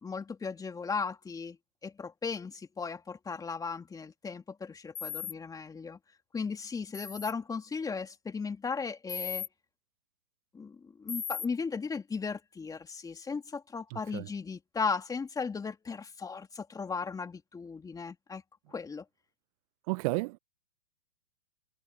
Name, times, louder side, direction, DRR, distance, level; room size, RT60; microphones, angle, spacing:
voice 1, 0.0-1.6 1.8-6.0 6.3-9.5 10.5-18.4 18.7-19.0, left 5 dB, 10° left, 2.6 m, -36 dB
sound 1, 4.9-5.3 6.9-7.3 9.1-9.5 11.1-11.5, left 7 dB, 80° left, 6.4 m, -37 dB
voice 2, 13.9-14.3 19.9-20.4, right 27 dB, 25° right, 0.8 m, -32 dB
figure-of-eight pair, 120°, 39 cm